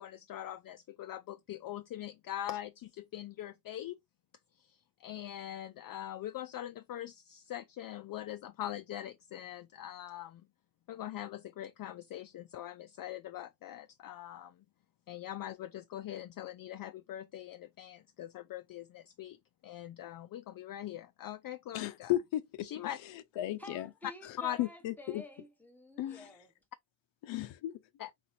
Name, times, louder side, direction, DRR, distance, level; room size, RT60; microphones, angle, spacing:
voice 1, 0.0-4.0 4.6-10.4 10.9-14.6 15.1-19.4 19.6-22.1 22.6-23.0 24.4-24.6 28.0-28.1, left 12 dB, 50° left, 0.5 m, -42 dB
voice 2, 21.7-22.7 23.4-23.9 24.6-25.2 26.0-26.2 27.2-27.7, left 14 dB, 85° left, 0.7 m, -34 dB
voice 3, 23.6-26.5, left 1 dB, 5° left, 1.2 m, -50 dB
4.3 x 3.9 x 2.7 m
cardioid pair, 115°, 44 cm